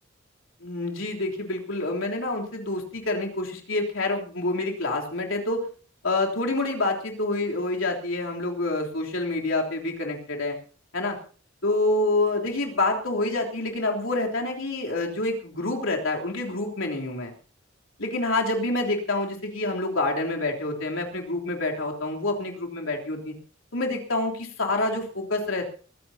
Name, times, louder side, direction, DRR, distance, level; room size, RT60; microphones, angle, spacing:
voice 1, 0.6-5.6 6.0-10.6 10.9-11.2 11.6-17.3 18.0-23.3 23.7-25.7, left 2 dB, 85° left, 0 dB, 3.4 m, -27 dB
23.0 x 15.5 x 2.9 m, 0.39 s
head